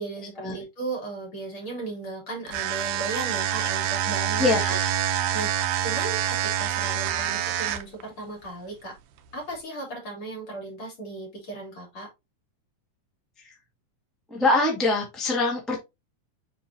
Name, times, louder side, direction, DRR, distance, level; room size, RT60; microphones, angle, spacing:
voice 1, 0.0-4.6 5.1-5.5 5.8-9.0 9.3-12.1, right 3 dB, 40° left, 3.9 m, -36 dB
sound 1, 2.5-8.0, right 10 dB, 80° right, 2.1 m, -26 dB
voice 2, 4.4-4.9 13.4-13.5 14.3-15.8, left 2 dB, ahead, 1.0 m, -24 dB
8.2 x 4.4 x 2.8 m
omnidirectional pair, 3.6 m